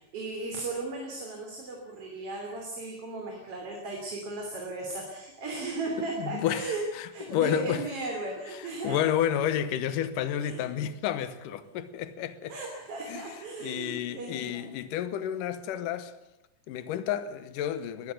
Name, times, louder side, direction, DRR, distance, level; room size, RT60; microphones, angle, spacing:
voice 1, 0.0-6.8 7.1-9.0 10.4-10.7 12.5-14.7, right 2 dB, 45° right, 3.9 m, -36 dB
voice 2, 6.2-7.8 8.6-12.5 13.1-13.4 13.6-16.1 16.7-18.1, left 10 dB, 75° left, 2.6 m, -31 dB
20.5 x 16.0 x 8.3 m
omnidirectional pair, 3.9 m